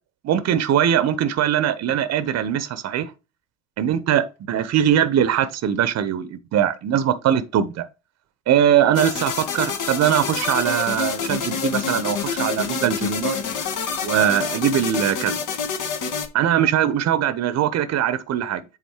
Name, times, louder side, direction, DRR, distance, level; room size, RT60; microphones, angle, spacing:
voice 1, 0.3-3.1 3.8-7.8 8.5-13.4 14.0-15.4 16.3-18.6, right 10 dB, 40° right, 1.0 m, -21 dB
sound 1, 8.9-16.3, left 6 dB, 50° left, 1.4 m, -27 dB
8.3 x 4.2 x 4.6 m
hypercardioid pair, 65°, 40 cm